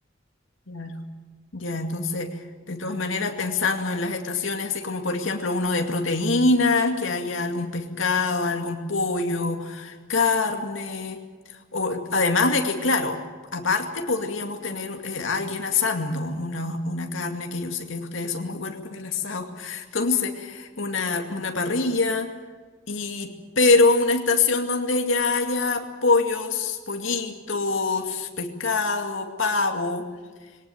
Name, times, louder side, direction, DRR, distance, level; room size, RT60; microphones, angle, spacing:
voice 1, 0.7-1.0 1.5-11.2 11.5-13.2 13.5-22.3 22.9-30.1, left 3 dB, 80° left, 4 dB, 2.3 m, -25 dB
22.5 x 18.5 x 9.1 m, 1.4 s
head